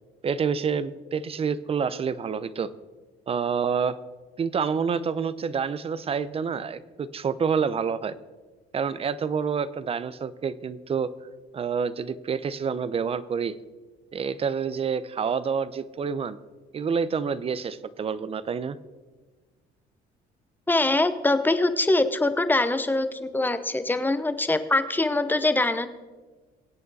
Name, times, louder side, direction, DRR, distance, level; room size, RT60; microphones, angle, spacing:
voice 1, 0.2-2.7 3.3-4.0 4.4-8.1 8.7-11.1 11.5-13.6 14.1-16.4 16.7-18.8, right 6 dB, 35° right, 16 dB, 0.7 m, -28 dB
voice 2, 20.7-25.9, left 2 dB, 10° left, 11 dB, 0.9 m, -23 dB
23.0 x 8.5 x 4.1 m, 1.3 s
cardioid pair, 110°, 17 cm